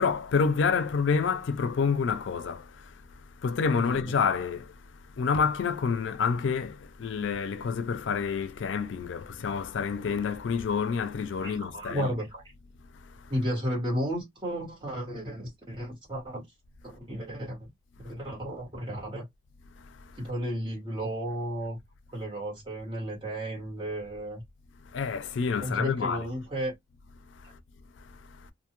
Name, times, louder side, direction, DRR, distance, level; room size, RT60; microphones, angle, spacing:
voice 1, 0.0-2.7 3.4-4.7 5.2-12.1 24.9-26.3, left 5 dB, 75° left, 0.4 m, -28 dB
voice 2, 3.8-4.1 11.4-12.4 13.3-16.4 17.1-17.7 18.0-19.2 20.2-21.8 22.1-24.4 25.6-26.7, equal, 25° right, 1.3 m, -33 dB
2.5 x 2.2 x 2.9 m
head